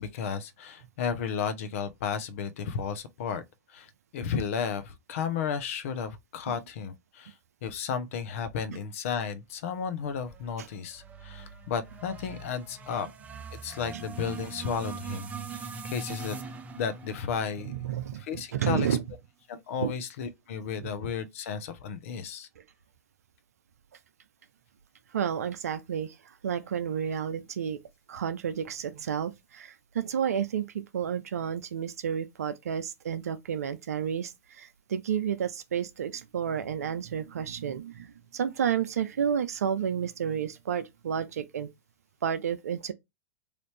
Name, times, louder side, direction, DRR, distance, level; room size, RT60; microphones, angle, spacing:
voice 1, 0.0-3.4 3.7-7.3 7.6-13.1 13.5-16.4 16.7-17.7 18.3-18.9 19.5-22.5, left 6 dB, 60° left, 0.7 m, -33 dB
sound 1, 10.1-18.4, right 5 dB, 20° right, 0.7 m, -42 dB
voice 2, 17.6-19.0 19.8-19.9 20.8-20.9 22.6-22.7 25.1-27.8 28.1-41.7 42.2-42.9, right 8 dB, 75° right, 0.6 m, -31 dB
3.2 x 2.6 x 3.2 m
hypercardioid pair, 95°, 8 cm